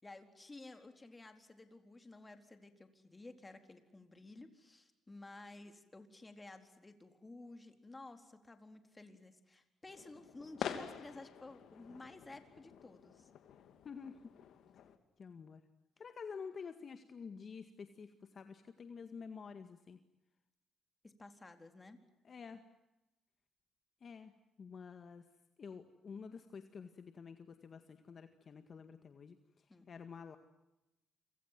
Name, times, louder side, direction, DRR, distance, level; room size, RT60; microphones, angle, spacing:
voice 1, 0.0-13.3 21.0-22.0 29.7-29.9, left 2 dB, 20° left, 7 dB, 4.2 m, -54 dB
sound 1, 9.9-15.0, left 9 dB, 75° left, 2.9 m, -47 dB
voice 2, 13.8-14.3 15.2-15.6 16.0-20.0 22.2-22.6 24.0-24.3 24.6-25.3 25.6-30.4, left 5 dB, 45° left, 8 dB, 1.9 m, -49 dB
28.5 x 27.0 x 7.7 m, 0.94 s
cardioid pair, 90°, 0 cm